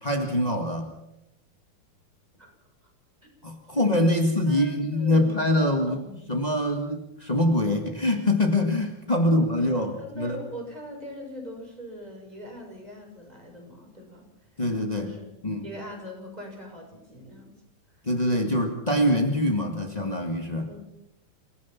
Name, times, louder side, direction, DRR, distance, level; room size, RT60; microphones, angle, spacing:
voice 1, 0.0-0.9 3.4-6.0 6.3-10.4 14.6-15.1 15.4-15.6 18.0-20.7, left 1 dB, 45° left, 4 dB, 0.5 m, -24 dB
voice 2, 4.5-5.4 5.9-6.2 9.6-14.2 14.5-14.6 15.0-15.3 15.6-17.5 17.9-18.0 20.7-20.8, equal, 10° right, 0 dB, 6.7 m, -41 dB
27.5 x 17.5 x 5.9 m, 0.82 s
omnidirectional pair, 4.2 m